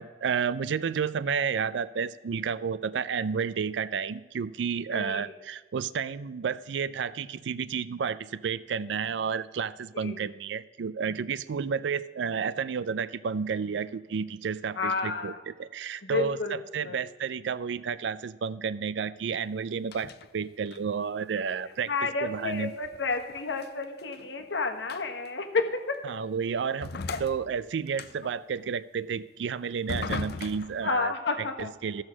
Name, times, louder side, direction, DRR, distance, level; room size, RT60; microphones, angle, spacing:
voice 1, 0.0-22.7 26.0-26.9 27.2-32.0, right 6 dB, 75° right, 17 dB, 0.4 m, -31 dB
voice 2, 4.9-5.2 10.0-10.2 14.8-15.4 16.0-16.5 16.8-17.0 21.9-26.0 27.1-27.2 30.8-31.7, left 4 dB, 75° left, 5 dB, 1.2 m, -30 dB
sound 1, 19.9-20.3 20.7-21.0 22.5-24.5 24.9-25.3 25.9-26.0 26.8-28.4 29.9-30.8, left 4 dB, 60° left, 0.5 m, -38 dB
14.0 x 6.4 x 6.1 m, 1.3 s
head